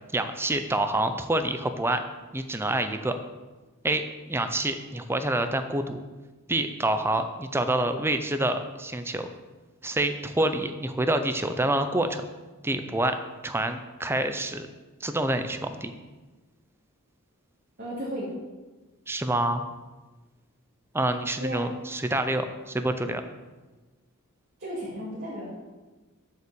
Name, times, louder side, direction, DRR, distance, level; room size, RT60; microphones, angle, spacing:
voice 1, 0.1-2.0 2.3-3.2 3.8-6.0 6.5-9.3 9.8-12.2 12.6-13.1 13.4-14.7 15.0-15.9 19.1-19.6 20.9-23.2, right 1 dB, 10° right, 8 dB, 0.5 m, -27 dB
voice 2, 17.8-18.3 21.4-21.7 24.6-25.5, right 1 dB, 45° right, -8 dB, 2.4 m, -34 dB
7.8 x 5.6 x 6.9 m, 1.2 s
head